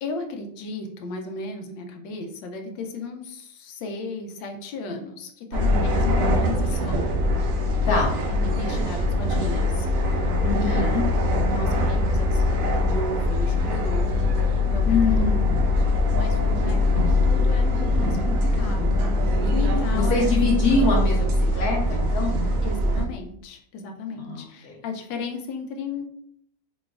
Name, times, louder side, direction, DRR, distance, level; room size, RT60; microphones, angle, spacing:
voice 1, 0.0-7.1 8.3-10.3 10.6-10.9 11.2-14.1 14.4-15.3 15.8-19.1 19.4-20.3 22.6-26.1, left 3 dB, 90° left, 4 dB, 1.3 m, -35 dB
sound 1, 5.5-23.0, left 2 dB, 70° right, 0.8 m, -22 dB
voice 2, 7.8-8.2 8.6-8.8 10.4-11.1 14.9-15.5 19.9-22.4 24.2-24.8, left 3 dB, 65° left, -2 dB, 1.0 m, -24 dB
4.0 x 3.0 x 2.3 m, 0.68 s
omnidirectional pair, 2.0 m